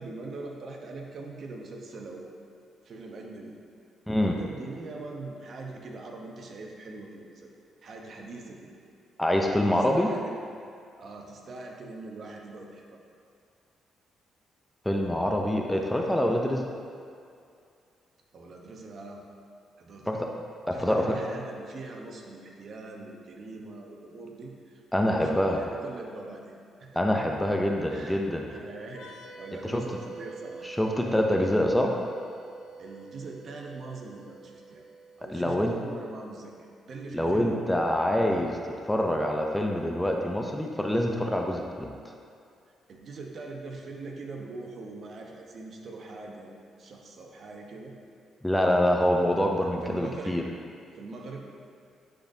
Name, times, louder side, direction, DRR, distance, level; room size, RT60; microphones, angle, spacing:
voice 1, 0.0-2.3 2.8-3.5 4.2-7.5 7.8-8.7 9.8-10.5 11.0-13.0 18.3-19.2 19.8-20.2 20.7-24.8 25.1-27.3 27.9-28.2 28.5-30.7 32.8-34.9 35.2-37.6 42.9-47.9 49.8-50.4 50.9-51.5, right 3 dB, 55° right, 1 dB, 0.8 m, -42 dB
voice 2, 4.1-4.4 9.2-10.1 14.9-16.7 20.1-20.3 20.7-21.2 24.9-25.6 27.0-28.5 29.6-29.8 30.6-31.9 35.3-35.7 37.1-41.9 48.4-50.4, left 1 dB, 5° left, 1 dB, 0.5 m, -25 dB
sound 1, 28.9-36.4, right 4 dB, 85° left, 0.7 m, -46 dB
10.5 x 4.0 x 2.7 m, 2.4 s
cardioid pair, 90°, 0 cm